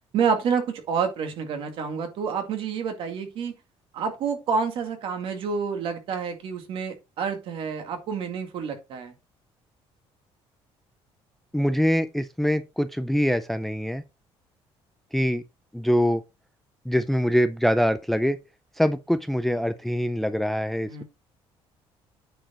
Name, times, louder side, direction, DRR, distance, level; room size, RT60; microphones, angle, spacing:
voice 1, 0.1-3.5 3.9-9.1 20.9-21.0, right 6 dB, 55° right, 2.0 m, -28 dB
voice 2, 11.5-14.0 15.1-15.4 15.7-16.2 16.9-18.4 18.8-21.0, equal, ahead, 0.4 m, -24 dB
9.1 x 4.6 x 4.3 m
cardioid pair, 175°, 11 cm